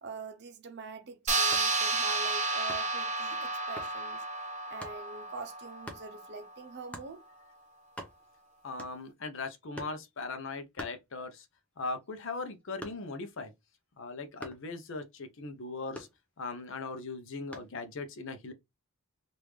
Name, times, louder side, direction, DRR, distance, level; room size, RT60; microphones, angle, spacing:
voice 1, 0.0-4.2 4.7-7.2, right 4 dB, 50° right, 0.6 m, -44 dB
sound 1, 1.3-6.1, right 3 dB, 35° right, 1.0 m, -31 dB
sound 2, 1.4-1.8 2.7-3.0 3.8-4.0 4.8-5.0 5.8-6.1 6.9-7.2 7.6-7.7 7.8-8.4 8.8-9.2 9.7-10.1 10.8-11.5 11.9-13.3 14.4-14.7 15.9-16.6 17.5-17.8, equal, 5° left, 0.6 m, -45 dB
voice 2, 8.6-11.5 11.8-13.5 14.0-16.1 16.4-18.5, left 3 dB, 60° left, 0.6 m, -39 dB
3.4 x 2.6 x 3.0 m
head